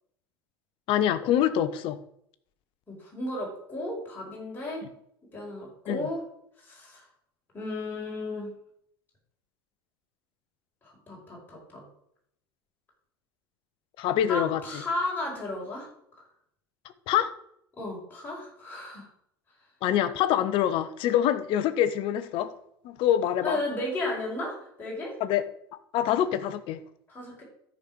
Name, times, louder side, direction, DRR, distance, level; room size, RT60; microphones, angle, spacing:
voice 1, 0.9-2.0 5.9-6.1 14.0-14.8 17.1-17.3 19.8-22.5 22.8-23.6 25.2-25.4 25.9-26.8, left 10 dB, 45° left, 0.9 m, -25 dB
voice 2, 2.9-4.8 5.3-6.2 6.6-7.0 7.5-8.5 10.8-11.8 14.3-15.9 17.8-19.1 23.4-25.1 27.1-27.4, left 2 dB, 15° left, 5.1 m, -34 dB
13.0 x 5.3 x 6.3 m
figure-of-eight pair, 75°, 13 cm